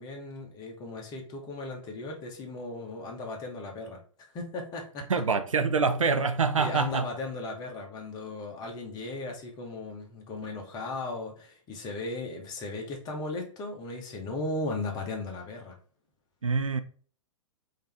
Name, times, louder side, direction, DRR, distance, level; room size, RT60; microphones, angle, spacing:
voice 1, 0.0-5.1 6.6-15.8, left 2 dB, 25° left, 1.2 m, -37 dB
voice 2, 5.1-7.1 16.4-16.8, right 4 dB, 80° right, 0.5 m, -25 dB
5.2 x 2.9 x 3.5 m
figure-of-eight pair, 110°, 17 cm